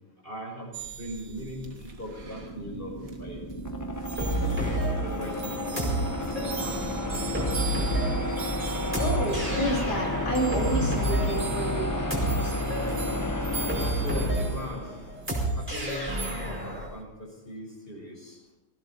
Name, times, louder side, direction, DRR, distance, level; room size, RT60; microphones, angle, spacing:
voice 1, 0.2-3.4 4.4-6.1 6.3-8.1 13.8-15.0 15.6-18.4, equal, 30° left, -1 dB, 5.6 m, -40 dB
sound 1, 0.7-17.0, right 5 dB, 55° right, 2.1 m, -41 dB
sound 2, 2.1-15.2, left 1 dB, 15° left, 0.9 m, -32 dB
sound 3, 4.2-16.9, right 1 dB, 5° right, 5.2 m, -30 dB
voice 2, 8.5-13.0, right 1 dB, 70° left, -1 dB, 3.8 m, -31 dB
19.5 x 16.5 x 4.2 m, 1.0 s
omnidirectional pair, 1.8 m